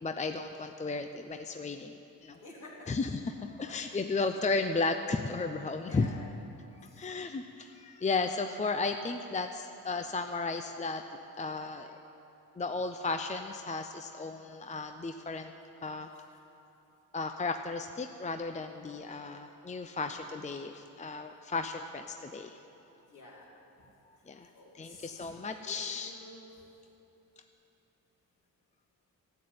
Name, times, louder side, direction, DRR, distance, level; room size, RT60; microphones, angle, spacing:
voice 1, 0.0-2.4 2.9-6.1 7.0-11.0 11.4-12.0 12.6-15.5 15.8-16.1 17.1-22.6 24.3-24.5 24.7-26.1, left 3 dB, 20° left, 6 dB, 0.6 m, -34 dB
voice 2, 2.4-2.9 3.6-4.7 5.7-6.2 6.8-7.1 20.0-20.1 23.1-23.5 24.6-25.4 25.6-26.5, left 2 dB, 60° left, -4 dB, 3.5 m, -51 dB
12.0 x 7.6 x 9.6 m, 2.9 s
cardioid pair, 75°, 35 cm